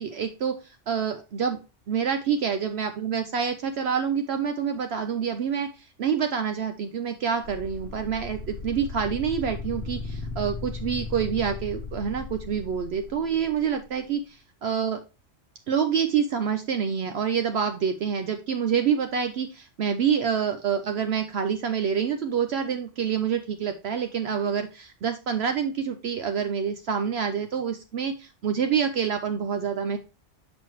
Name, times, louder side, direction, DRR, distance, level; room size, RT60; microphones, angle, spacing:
voice 1, 0.0-1.6 1.9-15.0 15.7-30.0, right 7 dB, 65° right, 7 dB, 0.8 m, -27 dB
sound 1, 7.4-13.6, left 3 dB, 65° left, 1.3 m, -36 dB
6.3 x 6.1 x 3.0 m, 0.31 s
omnidirectional pair, 1.2 m